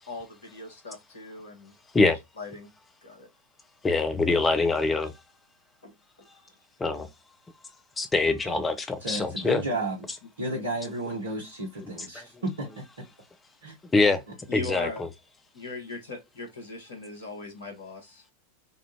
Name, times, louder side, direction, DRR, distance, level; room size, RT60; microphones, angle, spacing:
voice 1, 0.1-1.7 2.4-2.7 3.0-3.3 5.8-5.9 6.2-6.6 10.5-10.6 14.5-15.0 15.5-18.2, left 4 dB, 65° left, 1.3 m, -39 dB
voice 2, 3.8-5.1 6.8-7.1 8.0-9.6 11.8-12.4 13.9-14.2 14.5-15.1, left 3 dB, 15° left, 0.5 m, -24 dB
voice 3, 9.0-10.1 10.4-12.7 13.6-13.7, right 1 dB, 65° right, 1.0 m, -32 dB
3.5 x 2.3 x 2.8 m
figure-of-eight pair, 90°, 0 cm